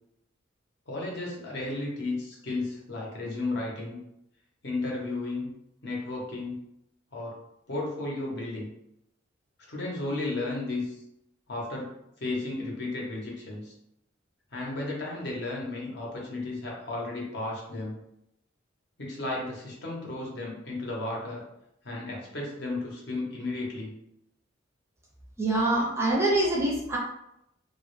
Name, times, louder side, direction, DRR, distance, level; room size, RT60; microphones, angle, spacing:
voice 1, 0.9-4.0 4.6-5.5 5.8-6.6 7.1-7.3 7.7-8.7 9.7-11.0 11.5-11.9 12.2-13.7 14.5-18.0 19.0-21.4 21.8-23.9, left 2 dB, 60° left, -3 dB, 0.8 m, -33 dB
voice 2, 25.4-27.0, right 1 dB, 15° right, -3 dB, 0.4 m, -25 dB
2.2 x 2.0 x 3.0 m, 0.81 s
head